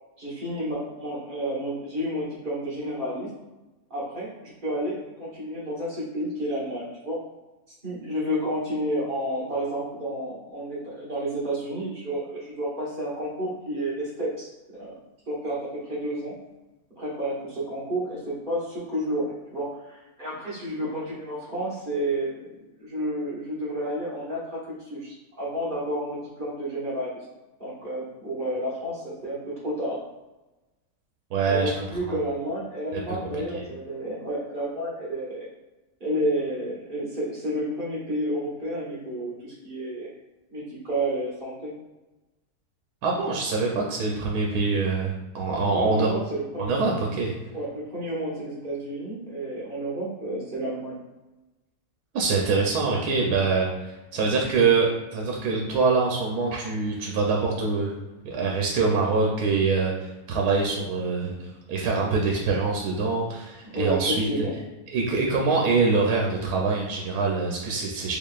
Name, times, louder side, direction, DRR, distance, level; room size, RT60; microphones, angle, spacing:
voice 1, 0.2-3.3 3.9-7.2 7.8-14.5 14.7-14.9 15.3-16.3 17.0-24.6 24.9-27.1 27.6-30.0 31.5-35.5 36.0-40.1 40.5-41.7 45.7-46.7 47.5-51.0 63.7-64.5, right 1 dB, 35° right, -8 dB, 1.5 m, -30 dB
voice 2, 31.3-31.7 32.0-32.2 32.9-33.6 43.0-46.1 46.6-47.3 52.1-57.9 58.2-64.2 64.9-68.2, right 4 dB, 85° right, -1 dB, 1.2 m, -24 dB
3.7 x 3.3 x 2.3 m, 1.1 s
omnidirectional pair, 1.6 m